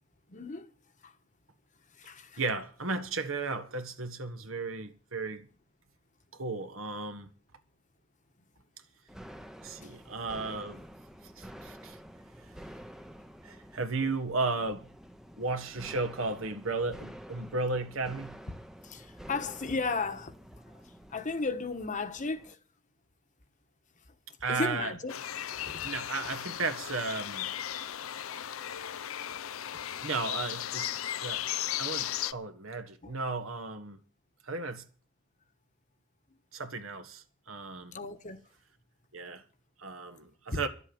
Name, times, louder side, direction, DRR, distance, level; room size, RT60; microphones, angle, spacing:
voice 1, 0.3-0.7 1.0-1.1 2.0-2.4 9.8-10.0 14.0-14.1 18.8-20.4 21.1-22.6 24.5-25.1 25.5-25.9 26.2-26.4 33.0-33.1 37.9-38.4, left 3 dB, 40° left, 1.3 m, -35 dB
voice 2, 2.4-5.5 6.3-7.3 9.6-10.8 11.4-12.0 13.4-14.9 15.4-18.4 24.4-24.9 25.8-27.5 30.0-30.9 31.2-31.4 31.8-34.0 34.4-34.8 36.5-38.0 39.1-39.4 39.8-40.7, right 3 dB, 75° right, 1.6 m, -34 dB
sound 1, 9.1-22.5, equal, ahead, 0.8 m, -49 dB
sound 2, 25.1-32.3, left 11 dB, 80° left, 0.6 m, -36 dB
12.0 x 7.9 x 9.4 m
head